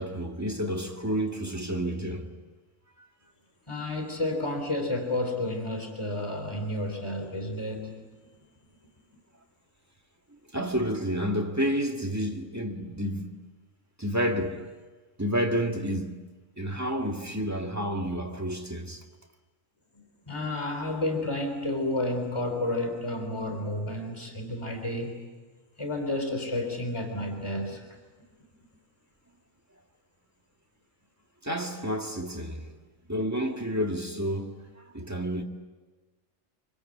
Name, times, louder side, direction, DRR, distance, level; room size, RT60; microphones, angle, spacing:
voice 1, 0.0-2.4 10.5-13.4 14.0-14.8 15.2-16.2 16.6-19.0 31.4-32.7 33.1-35.4, equal, 10° right, 2.0 m, -30 dB
voice 2, 3.7-7.9 20.0-25.3 25.8-28.0, left 1 dB, 20° left, 3.8 m, -31 dB
26.0 x 25.0 x 8.6 m
omnidirectional pair, 1.4 m